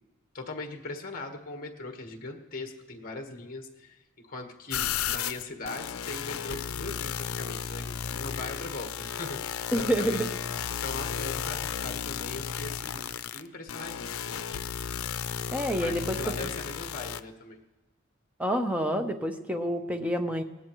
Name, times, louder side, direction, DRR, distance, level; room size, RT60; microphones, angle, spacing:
voice 1, 0.3-10.3 10.7-14.4 15.8-17.6, left 2 dB, 40° left, 3 dB, 1.3 m, -40 dB
sound 1, 4.7-17.2, left 8 dB, 85° left, 0.5 m, -34 dB
voice 2, 9.7-10.3 15.5-16.5 18.4-20.4, equal, 5° right, 6 dB, 0.7 m, -28 dB
20.0 x 17.0 x 3.1 m, 1.1 s
head